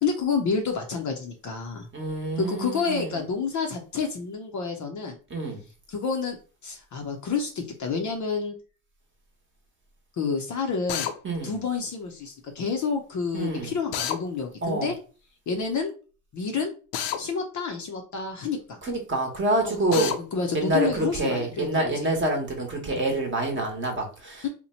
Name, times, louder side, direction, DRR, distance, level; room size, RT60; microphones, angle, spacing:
voice 1, 0.0-1.9 2.4-5.2 5.9-6.4 6.6-8.5 10.2-11.1 11.4-15.0 15.5-15.9 16.3-16.7 17.2-18.8 19.6-21.9 24.4-24.5, left 5 dB, 40° left, 0.5 m, -29 dB
voice 2, 1.9-3.2 5.3-5.6 11.2-11.5 13.3-13.7 14.6-14.9 18.8-20.1 20.5-24.4, right 2 dB, 25° right, 0.9 m, -27 dB
Drill, 10.9-11.1 13.9-14.2 16.9-17.2 19.9-20.2, left 9 dB, 75° left, 0.6 m, -28 dB
2.8 x 2.1 x 4.1 m
cardioid pair, 135°, 49 cm